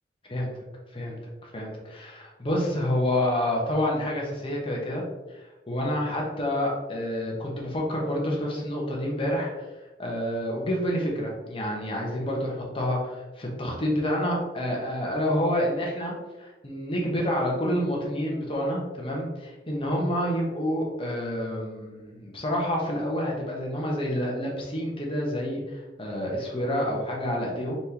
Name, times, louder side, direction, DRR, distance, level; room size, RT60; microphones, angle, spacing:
voice 1, 1.4-5.0 5.3-9.5 10.0-27.7, equal, 30° left, -2 dB, 1.0 m, -28 dB
4.2 x 3.5 x 2.9 m, 1.1 s
head